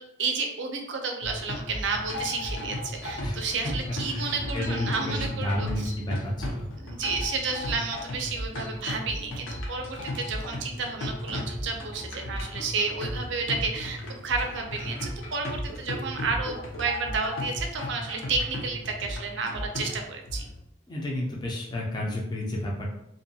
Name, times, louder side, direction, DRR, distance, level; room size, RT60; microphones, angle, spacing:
voice 1, 0.0-5.9 6.8-20.5, right 4 dB, 65° right, 3 dB, 0.4 m, -31 dB
sound 1, 1.2-20.6, left 1 dB, 80° left, 0.7 m, -35 dB
voice 2, 3.2-3.7 4.1-6.7 20.9-22.9, left 1 dB, 20° left, -3 dB, 0.4 m, -31 dB
2.5 x 2.2 x 2.7 m, 0.80 s
head